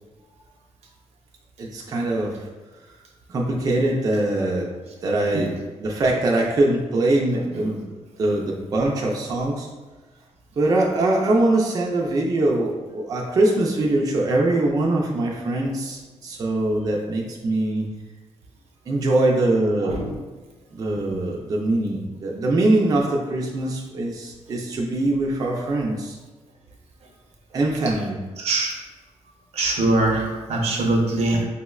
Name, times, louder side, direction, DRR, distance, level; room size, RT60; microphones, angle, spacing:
voice 1, 1.6-2.4 3.3-4.7 5.0-7.8 8.2-9.7 10.6-17.9 18.9-20.0 20.7-26.2 27.5-28.2, right 2 dB, 35° right, -2 dB, 0.4 m, -22 dB
voice 2, 19.8-20.2 28.4-28.8 29.5-31.4, right 2 dB, 75° right, 1 dB, 0.6 m, -22 dB
5.1 x 2.0 x 2.3 m, 1.3 s
wide cardioid pair, 155°, 11 cm